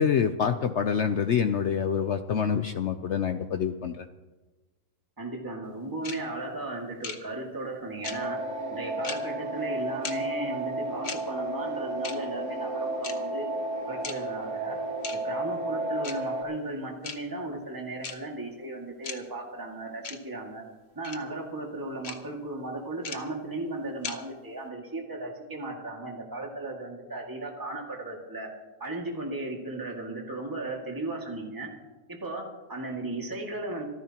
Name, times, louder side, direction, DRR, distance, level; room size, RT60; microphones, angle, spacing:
voice 1, 0.0-4.0, left 7 dB, 80° left, 8 dB, 0.6 m, -26 dB
voice 2, 5.2-8.4 8.7-13.5 13.9-14.8 15.1-20.6 20.9-28.5 28.8-31.7 32.1-33.8, right 2 dB, 10° right, 0 dB, 2.0 m, -36 dB
sound 1, 6.0-6.2 7.0-7.2 8.0-8.2 9.0-9.2 10.0-10.2 11.0-11.2 12.0-12.2 13.0-13.1 14.0-14.2 15.0-15.2 16.0-16.2 17.0-17.2 18.0-18.2 19.0-19.2 20.0-20.2 21.0-21.2 22.0-22.2 23.0-23.2 24.0-24.2, left 5 dB, 40° left, 1.1 m, -35 dB
sound 2, 8.0-16.4, right 1 dB, 60° right, 2.2 m, -32 dB
25.5 x 14.0 x 2.9 m, 1.2 s
omnidirectional pair, 1.9 m